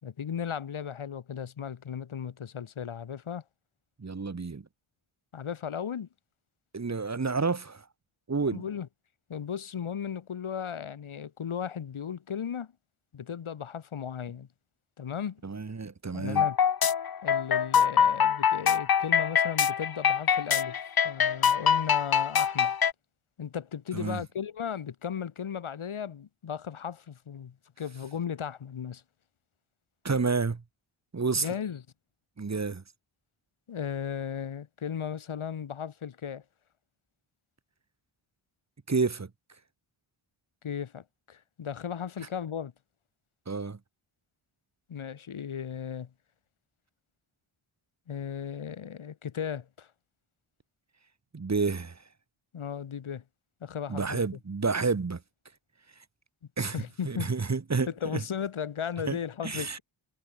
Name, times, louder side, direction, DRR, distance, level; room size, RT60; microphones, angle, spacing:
voice 1, 0.0-3.4 5.3-6.1 8.5-8.9 9.3-12.7 13.1-14.5 15.0-15.4 16.1-16.6 17.2-20.8 21.0-22.7 23.4-29.0 31.3-31.8 33.7-36.4 40.6-42.7 44.9-46.1 48.1-49.9 52.5-53.2 53.6-54.2 56.7-57.3 57.9-59.8, left 8 dB, 85° left, 5.3 m, -36 dB
voice 2, 4.0-4.6 6.7-7.8 8.3-8.6 15.4-16.5 23.9-24.2 30.0-30.6 31.1-31.5 32.4-32.8 38.9-39.3 43.5-43.8 51.3-52.0 53.9-55.2 56.6-56.8 57.0-58.2 59.1-59.2 59.4-59.8, right 4 dB, 35° right, 2.4 m, -29 dB
sound 1, 16.4-22.9, left 8 dB, 50° left, 1.1 m, -24 dB
wide cardioid pair, 105°, 48 cm